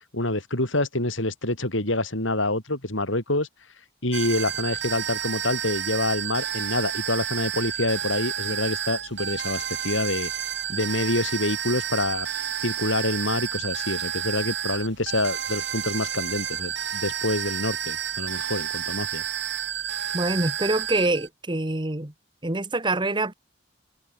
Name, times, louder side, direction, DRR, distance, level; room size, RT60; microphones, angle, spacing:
voice 1, 0.1-3.5 4.0-10.3 10.7-12.3 12.6-19.2, left 2 dB, 75° left, 7.3 m, -27 dB
sound 1, 4.1-21.3, right 9 dB, 60° right, 2.3 m, -30 dB
voice 2, 20.1-22.1 22.4-23.3, right 2 dB, 25° right, 1.5 m, -25 dB
head